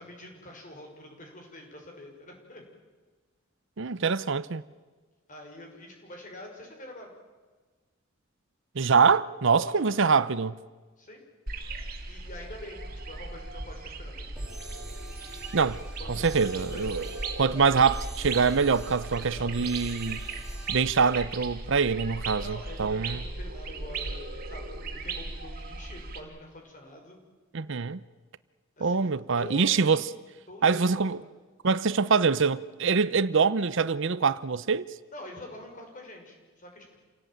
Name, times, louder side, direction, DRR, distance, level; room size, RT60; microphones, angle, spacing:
voice 1, 0.0-2.6 5.3-7.1 9.6-9.9 11.0-11.2 12.1-14.3 16.0-17.1 19.1-19.7 22.4-27.2 28.8-29.1 29.4-30.0 30.5-31.2 35.1-37.0, left 1 dB, 40° left, 6.1 m, -45 dB
voice 2, 3.8-4.6 8.8-10.5 15.5-15.8 16.1-17.1 17.4-20.2 20.7-23.2 27.5-28.0 28.8-30.0 30.6-31.2 31.6-34.9, right 5 dB, 65° right, 0.7 m, -24 dB
sound 1, 11.5-26.2, right 3 dB, 45° right, 2.7 m, -37 dB
sound 2, 14.4-21.2, right 2 dB, 5° right, 3.2 m, -47 dB
28.5 x 17.5 x 9.2 m
head